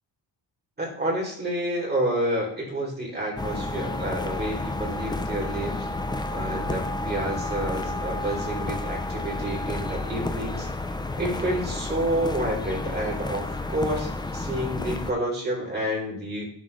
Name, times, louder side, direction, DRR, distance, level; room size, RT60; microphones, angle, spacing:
voice 1, 0.8-5.9 6.3-10.7 11.2-16.5, right 1 dB, 20° right, -2 dB, 2.8 m, -29 dB
sound 1, 3.4-15.1, left 2 dB, 10° left, 0.4 m, -31 dB
11.5 x 3.8 x 3.1 m, 0.64 s
wide cardioid pair, 155°, 43 cm